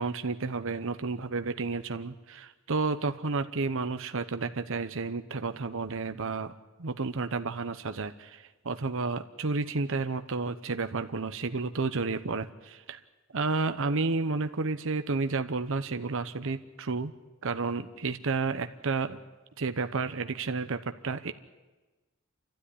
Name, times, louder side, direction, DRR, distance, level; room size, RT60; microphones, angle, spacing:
voice 1, 0.0-6.5 6.8-13.0 13.3-17.1 17.4-19.2 19.6-21.3, right 4 dB, 65° right, 9 dB, 0.9 m, -31 dB
28.0 x 13.0 x 10.0 m, 1.2 s
head